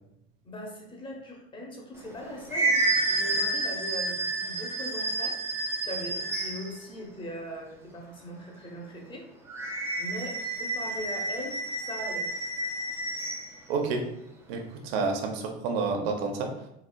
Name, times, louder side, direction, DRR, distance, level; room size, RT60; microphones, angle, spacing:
voice 1, 0.4-2.8 3.1-9.2 10.0-11.6 11.8-12.3, left 1 dB, 15° left, 0 dB, 0.9 m, -40 dB
sound 1, 2.0-6.8 9.5-13.5, right 2 dB, 10° right, 0.6 m, -30 dB
voice 2, 13.7-14.0 14.5-16.5, right 4 dB, 75° right, 3 dB, 0.8 m, -29 dB
4.2 x 2.4 x 2.2 m, 0.80 s
supercardioid pair, 100°, 30 cm